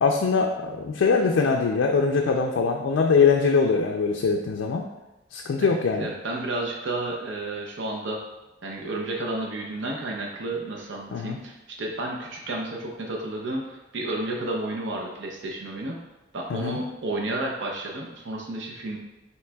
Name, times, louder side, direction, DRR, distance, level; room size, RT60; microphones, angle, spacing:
voice 1, 0.0-4.9 5.3-6.1 11.1-11.4 16.5-16.8, left 5 dB, 70° left, 2 dB, 0.4 m, -22 dB
voice 2, 5.6-8.2 8.6-16.0 16.3-19.0, right 2 dB, 65° right, -1 dB, 0.6 m, -31 dB
5.8 x 3.1 x 2.3 m, 1.0 s
head